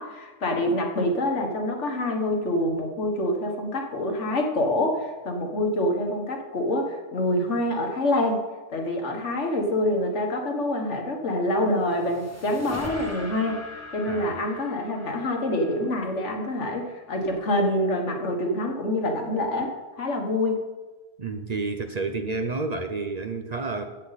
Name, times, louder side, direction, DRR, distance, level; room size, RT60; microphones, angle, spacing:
voice 1, 0.0-8.4 8.7-13.6 13.9-19.7 20.0-20.7, left 1 dB, 85° left, 1.8 m, -26 dB
sound 1, 11.5-16.9, left 1 dB, 15° left, 1.5 m, -42 dB
voice 2, 14.1-14.5 21.2-23.9, right 3 dB, 40° right, 0.7 m, -30 dB
15.0 x 7.8 x 4.1 m
omnidirectional pair, 1.2 m